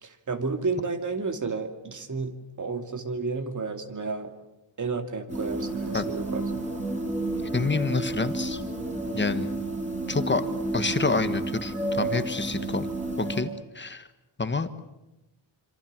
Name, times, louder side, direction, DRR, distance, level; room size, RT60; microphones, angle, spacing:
voice 1, 0.0-4.3 4.8-6.6, right 4 dB, 40° right, 7 dB, 2.7 m, -31 dB
sound 1, 5.3-13.4, right 2 dB, 15° right, 6.0 m, -31 dB
voice 2, 7.5-8.6 9.1-9.5 10.1-10.5 10.7-12.9 13.2-14.1 14.4-14.7, left 3 dB, 25° left, 10 dB, 1.4 m, -27 dB
27.0 x 27.0 x 7.6 m, 0.97 s
wide cardioid pair, 125°, 47 cm